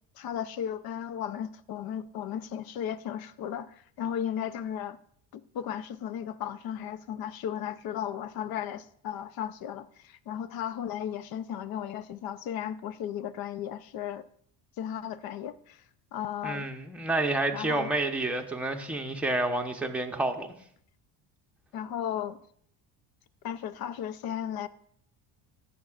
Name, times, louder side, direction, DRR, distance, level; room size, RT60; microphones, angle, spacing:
voice 1, 0.2-5.0 5.3-14.2 14.8-15.8 16.1-16.7 17.5-17.9 21.7-22.4 23.4-24.7, left 9 dB, 50° left, 0.6 m, -35 dB
voice 2, 16.4-20.5, right 2 dB, 5° right, 0.9 m, -29 dB
14.0 x 7.9 x 2.4 m
cardioid pair, 110°, 47 cm